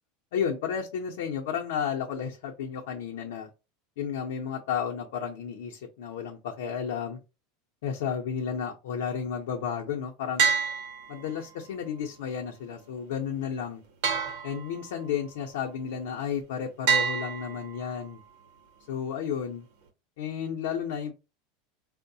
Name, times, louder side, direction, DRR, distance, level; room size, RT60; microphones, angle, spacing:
voice 1, 0.3-3.5 4.0-7.2 7.8-10.4 11.1-13.8 14.4-18.2 18.9-19.7 20.2-21.2, left 7 dB, 80° left, 0 dB, 0.5 m, -32 dB
sound 1, 10.4-11.6 14.0-15.1 16.9-18.1, right 6 dB, 65° right, 0.7 m, -28 dB
4.5 x 2.0 x 2.6 m, 0.29 s
supercardioid pair, 160°, 0 cm